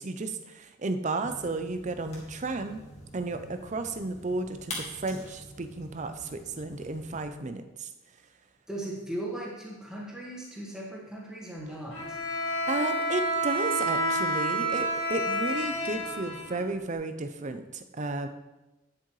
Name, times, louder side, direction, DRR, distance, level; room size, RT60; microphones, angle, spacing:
voice 1, 0.0-2.8 3.1-7.9 12.7-18.3, right 2 dB, 35° right, 9 dB, 0.5 m, -33 dB
sound 1, 1.2-7.3, left 1 dB, 30° left, 2.0 m, -45 dB
voice 2, 8.7-12.2, right 1 dB, 5° right, -4 dB, 1.7 m, -38 dB
Bowed string instrument, 11.9-16.9, right 1 dB, 60° left, 3.0 m, -29 dB
9.8 x 7.5 x 3.2 m, 0.99 s
head